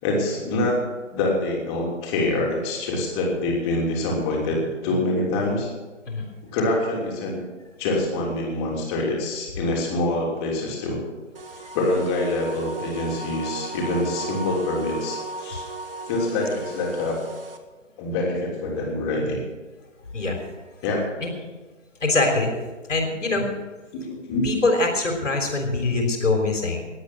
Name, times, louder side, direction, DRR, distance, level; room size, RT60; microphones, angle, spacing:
voice 1, 0.0-5.7 6.4-7.4 7.8-11.0 11.7-15.6 16.1-17.2 18.0-19.4 20.8-21.2 24.1-24.5, left 2 dB, 20° left, -2 dB, 3.2 m, -25 dB
sound 1, 11.3-17.6, right 2 dB, 45° right, 1.5 m, -35 dB
voice 2, 20.1-20.4 21.2-21.3 22.0-22.5 22.9-23.5 24.4-26.8, left 3 dB, 70° left, 2 dB, 3.6 m, -23 dB
20.0 x 8.7 x 6.1 m, 1.3 s
figure-of-eight pair, 140°, 38 cm